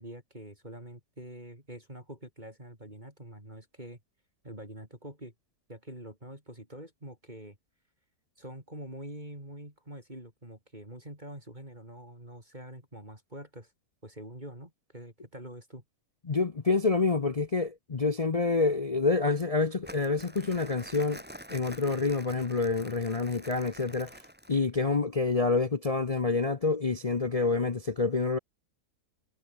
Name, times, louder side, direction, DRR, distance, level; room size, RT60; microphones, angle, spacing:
voice 1, 0.0-4.0 4.4-5.3 5.7-7.6 8.4-13.7 14.0-15.8, right 1 dB, 25° right, 6.3 m, -45 dB
voice 2, 16.3-21.2 21.5-24.1 24.5-28.4, left 4 dB, 35° left, 0.6 m, -27 dB
Crumpling crinkling, 19.8-24.7, equal, 5° right, 5.0 m, -47 dB
omnidirectional pair, 1.7 m